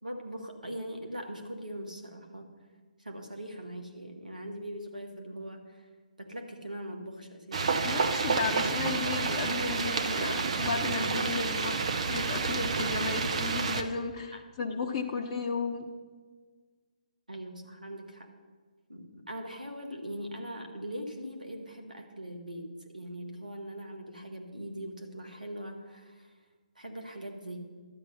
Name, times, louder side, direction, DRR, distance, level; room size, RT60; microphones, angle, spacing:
voice 1, 0.0-2.5 3.0-5.9 6.2-7.7 17.3-18.3 18.9-22.7 22.9-26.3 26.7-27.7, equal, 85° right, 3 dB, 1.7 m, -41 dB
sound 1, 7.5-13.8, right 4 dB, 55° right, 0.8 m, -29 dB
voice 2, 7.8-15.8, left 4 dB, 30° left, 1 dB, 0.8 m, -34 dB
12.0 x 8.2 x 5.6 m, 1.5 s
figure-of-eight pair, 135°, 4 cm